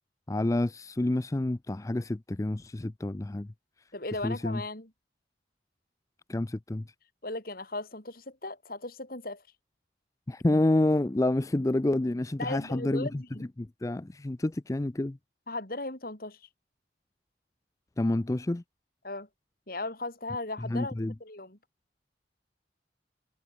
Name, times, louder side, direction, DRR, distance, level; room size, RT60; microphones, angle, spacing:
voice 1, 0.3-3.5 4.2-4.6 6.3-6.9 10.3-13.1 13.6-15.2 18.0-18.6 20.6-21.1, left 1 dB, 20° left, 0.4 m, -28 dB
voice 2, 3.9-4.9 7.2-9.4 12.4-13.4 15.5-16.5 19.0-19.3 19.7-20.9 21.2-21.6, left 2 dB, 55° left, 5.0 m, -37 dB
head